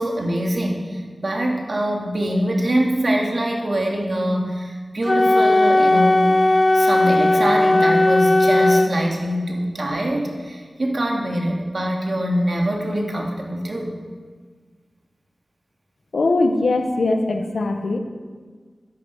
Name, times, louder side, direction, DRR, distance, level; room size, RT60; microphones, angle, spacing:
voice 1, 0.0-13.9, equal, 60° right, 0 dB, 2.5 m, -23 dB
Wind instrument woodwind instrument, 5.0-8.9, left 2 dB, 35° left, 0.5 m, -16 dB
voice 2, 16.1-18.0, left 2 dB, 85° left, 5 dB, 1.2 m, -20 dB
12.5 x 10.5 x 6.5 m, 1.5 s
cardioid pair, 50°, 0 cm